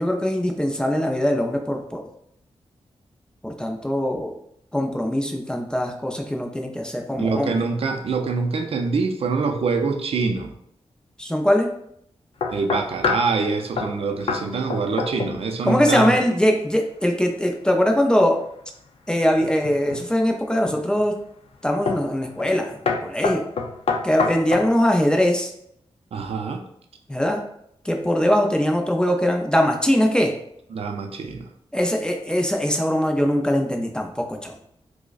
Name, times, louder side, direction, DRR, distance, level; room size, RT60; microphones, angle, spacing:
voice 1, 0.0-2.0 3.4-4.3 4.7-7.6 11.2-11.7 15.6-18.4 19.1-21.2 21.6-23.4 24.0-25.5 27.1-27.4 27.9-30.3 31.7-34.5, equal, 10° left, 2 dB, 0.4 m, -21 dB
voice 2, 7.1-10.5 12.5-16.2 26.1-26.6 30.7-31.5, right 4 dB, 65° right, 4 dB, 0.4 m, -25 dB
sound 1, 12.4-13.3 13.8-14.0 14.3-14.4 14.7-15.4 15.7-16.0 19.4-20.1 20.7-21.1 21.9-22.1 22.4-22.6 22.9-24.7, left 4 dB, 65° left, 0.4 m, -26 dB
4.7 x 2.1 x 2.4 m, 0.72 s
wide cardioid pair, 105°, 10 cm